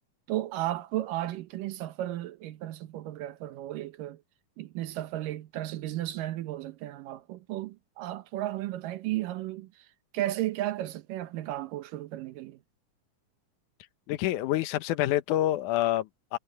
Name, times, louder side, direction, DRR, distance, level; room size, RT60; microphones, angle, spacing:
voice 1, 0.3-4.2 4.6-9.9 10.1-12.6, right 14 dB, 80° right, 2.7 m, -34 dB
voice 2, 14.1-16.4, left 14 dB, 70° left, 2.3 m, -27 dB
omnidirectional pair, 3.9 m